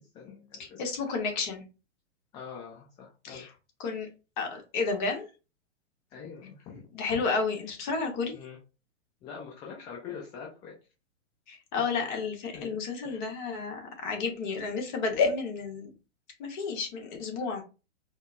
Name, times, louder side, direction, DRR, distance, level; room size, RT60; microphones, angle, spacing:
voice 1, 0.1-0.8 2.3-3.6 6.1-6.8 8.3-8.6 9.2-10.7 12.5-12.8 13.0-13.3, left 6 dB, 15° left, -1 dB, 0.3 m, -44 dB
voice 2, 0.8-1.6 3.2-3.5 3.8-4.1 4.4-5.2 6.9-8.4 11.5-15.9 16.4-17.6, left 4 dB, 40° left, 3 dB, 1.1 m, -31 dB
4.3 x 2.0 x 2.3 m, 0.31 s
hypercardioid pair, 115°, 35 cm